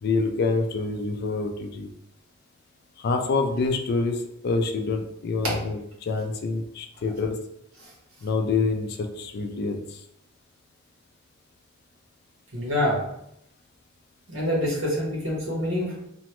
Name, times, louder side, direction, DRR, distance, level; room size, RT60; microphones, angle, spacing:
voice 1, 0.0-1.9 3.0-7.4 8.2-10.0, left 3 dB, 50° left, 5 dB, 0.3 m, -27 dB
voice 2, 12.5-13.0 14.3-16.0, left 1 dB, 75° right, -4 dB, 1.2 m, -26 dB
2.9 x 2.2 x 2.9 m, 0.76 s
head